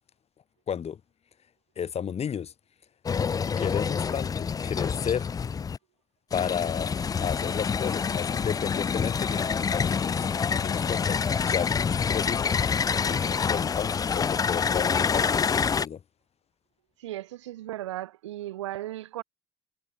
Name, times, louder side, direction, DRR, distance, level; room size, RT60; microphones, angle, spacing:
voice 1, 0.7-1.0 1.8-2.5 3.6-5.3 6.3-6.9 7.2-11.7 12.1-12.5 13.1-15.4 15.7-16.0, left 8 dB, 45° left, 6.4 m, -32 dB
sound 1, 3.1-5.8 6.3-15.9, left 6 dB, 25° left, 0.4 m, -27 dB
voice 2, 17.0-19.2, right 14 dB, 90° right, 2.8 m, -36 dB
hypercardioid pair, 65°, 15 cm